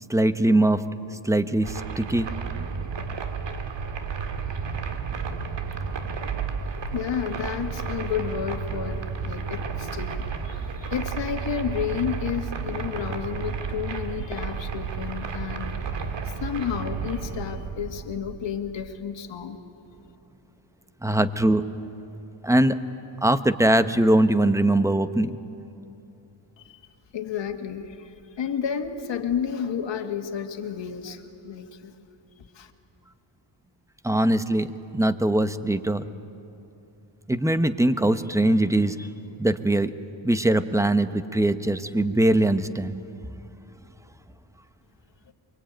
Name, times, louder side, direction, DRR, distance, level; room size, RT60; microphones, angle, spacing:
voice 1, 0.1-0.8 1.2-2.3 21.0-21.6 22.4-22.8 23.2-25.3 34.0-36.0 37.3-39.1 39.4-39.9 40.2-42.9, right 1 dB, 5° right, 11 dB, 1.1 m, -21 dB
sound 1, 1.6-18.9, right 5 dB, 60° right, 2.1 m, -32 dB
voice 2, 6.9-19.6 26.6-26.8 27.1-31.9 32.4-32.7 45.3-45.4, left 8 dB, 60° left, 4 dB, 2.1 m, -31 dB
24.0 x 23.5 x 9.1 m, 2.9 s
cardioid pair, 80°, 49 cm